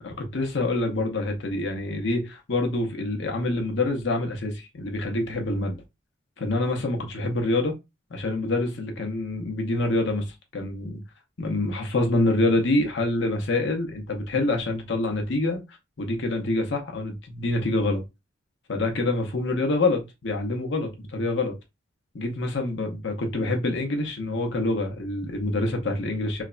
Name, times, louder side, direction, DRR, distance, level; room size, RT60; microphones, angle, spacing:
voice 1, 0.0-5.8 6.4-7.7 8.1-11.0 11.4-15.6 16.0-18.0 18.7-21.5 22.1-26.4, left 2 dB, 65° left, 0.7 m, -26 dB
3.2 x 2.1 x 2.4 m
head